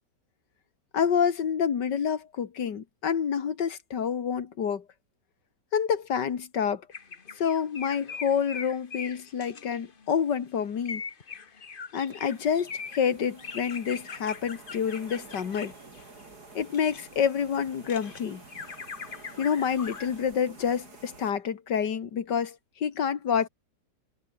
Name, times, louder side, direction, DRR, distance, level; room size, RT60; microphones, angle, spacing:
voice 1, 0.9-4.8 5.7-6.8 7.4-11.0 11.9-15.7 16.5-18.4 19.4-23.5, left 7 dB, 80° left, 2.3 m, -28 dB
sound 1, 6.9-10.1 10.8-17.0 17.5-20.2, left 5 dB, 35° left, 1.3 m, -41 dB
sound 2, 12.1-21.3, right 3 dB, 65° right, 4.5 m, -50 dB
omnidirectional pair, 1.8 m